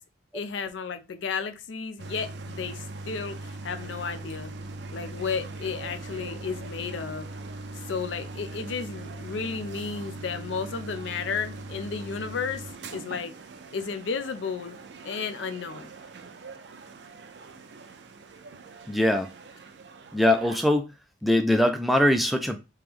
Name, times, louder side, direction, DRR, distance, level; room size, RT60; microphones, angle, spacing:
voice 1, 0.3-4.5 4.9-7.3 7.9-12.6 12.9-13.3 13.7-14.8 15.0-15.9, left 5 dB, 75° left, 0.5 m, -33 dB
sound 1, 2.0-20.6, right 2 dB, 60° right, 0.5 m, -41 dB
voice 2, 18.9-19.3 20.1-20.9 21.2-22.6, left 1 dB, ahead, 0.3 m, -22 dB
3.2 x 2.9 x 3.6 m
head